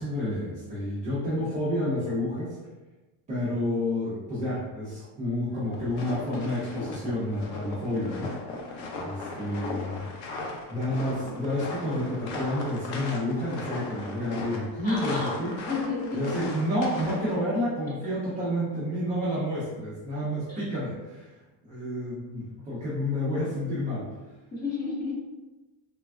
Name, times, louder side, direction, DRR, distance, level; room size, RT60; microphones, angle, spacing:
voice 1, 0.0-2.6 3.3-8.3 8.9-10.1 10.7-15.5 16.1-21.3 21.6-24.1, left 1 dB, 20° right, -10 dB, 0.3 m, -29 dB
sound 1, 5.6-17.4, left 2 dB, 80° left, 0.7 m, -37 dB
voice 2, 14.8-15.3 15.6-16.2 20.5-20.6 24.5-25.2, left 4 dB, 20° left, -7 dB, 0.8 m, -32 dB
3.3 x 2.1 x 2.3 m, 1.1 s
cardioid pair, 160°, 46 cm